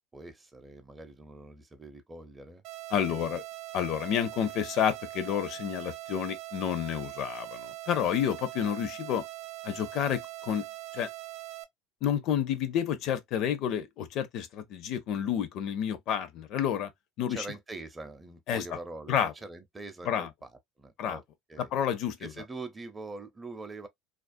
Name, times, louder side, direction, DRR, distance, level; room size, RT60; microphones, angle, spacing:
voice 1, 0.1-2.6 3.1-3.4 17.3-20.3 20.8-21.2 21.5-21.7 22.2-23.9, right 3 dB, 15° right, 0.6 m, -43 dB
sound 1, 2.6-11.6, right 16 dB, 60° right, 0.3 m, -42 dB
voice 2, 2.9-3.4 3.7-9.2 9.6-10.6 10.9-11.1 12.0-16.9 17.2-17.5 18.5-18.6 19.1-19.3 20.1-20.3 21.0-21.2 21.6-22.3, left 9 dB, 55° left, 0.5 m, -30 dB
2.4 x 2.0 x 2.5 m
supercardioid pair, 105°, 0 cm